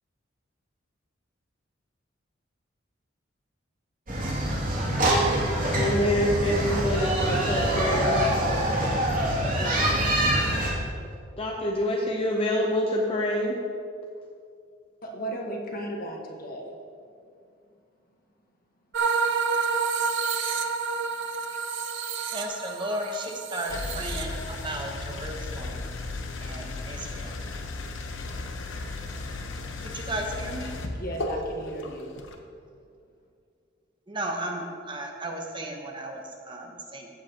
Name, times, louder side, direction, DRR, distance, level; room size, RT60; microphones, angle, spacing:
sound 1, 4.1-10.7, right 1 dB, 45° right, 2.4 m, -25 dB
voice 1, 5.7-8.2 9.6-10.0 11.4-13.6, left 1 dB, 30° left, -1 dB, 0.7 m, -26 dB
voice 2, 15.0-16.7 30.9-32.1, right 1 dB, 50° left, 1 dB, 1.3 m, -35 dB
sound 2, 18.9-24.7, right 5 dB, 70° right, 0.8 m, -29 dB
voice 3, 22.3-25.7 26.4-27.3 29.8-30.7 34.1-37.1, right 1 dB, 25° right, 2 dB, 1.0 m, -34 dB
sound 3, 23.7-32.4, left 2 dB, 85° left, 0.9 m, -35 dB
15.5 x 7.5 x 2.9 m, 2.3 s
head